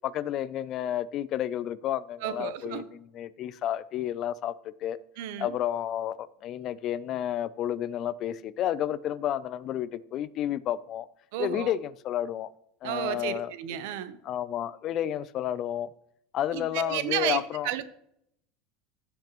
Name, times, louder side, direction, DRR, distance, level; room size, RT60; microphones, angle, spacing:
voice 1, 0.0-5.0 5.4-11.1 11.4-12.5 12.8-13.5 14.2-15.9 16.3-17.7, left 11 dB, 40° left, 0.4 m, -31 dB
voice 2, 2.2-2.8 5.2-5.5 11.3-11.7 12.8-14.2 16.5-17.8, right 11 dB, 70° right, 0.7 m, -32 dB
15.0 x 5.3 x 3.0 m
supercardioid pair, 145°, 0 cm